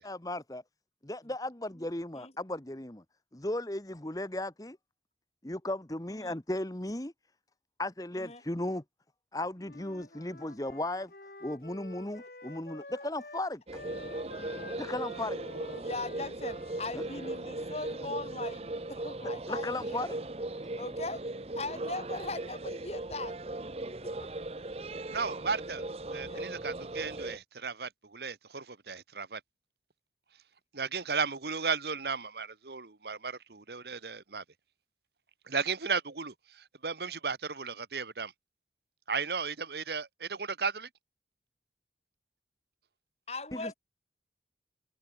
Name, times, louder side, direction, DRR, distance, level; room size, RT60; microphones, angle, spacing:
voice 1, 0.0-0.6 1.0-3.0 3.3-4.8 5.4-7.1 7.8-8.8 9.3-11.1 11.4-13.8 14.8-15.4 16.9-17.0 19.2-20.2 43.5-43.7, left 1 dB, 20° left, 1.2 m, -36 dB
Wind instrument woodwind instrument, 9.6-13.5 13.7-18.0, left 2 dB, 55° left, 2.5 m, -49 dB
sound 1, 13.7-27.4, right 2 dB, 35° right, 0.9 m, -38 dB
voice 2, 15.8-20.1 20.8-21.2 21.6-23.3 24.0-24.3 26.3-26.5 43.3-43.7, left 2 dB, 35° left, 7.3 m, -40 dB
voice 3, 25.1-25.8 26.1-29.4 30.7-34.4 35.5-38.3 39.1-40.9, right 5 dB, 65° right, 1.3 m, -35 dB
head